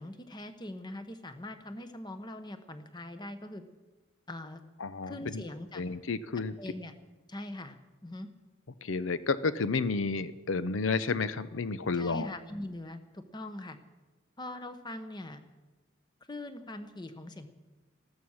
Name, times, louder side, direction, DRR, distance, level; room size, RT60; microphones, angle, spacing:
voice 1, 0.0-3.6 4.3-4.6 5.0-5.8 6.6-6.9 7.3-8.3 11.9-13.8 14.4-15.4 16.3-17.5, left 1 dB, 20° left, 9 dB, 1.0 m, -42 dB
voice 2, 4.8-5.4 5.7-6.6 8.8-12.3, left 4 dB, 80° left, 15 dB, 0.7 m, -31 dB
14.0 x 13.0 x 6.4 m, 1.2 s
head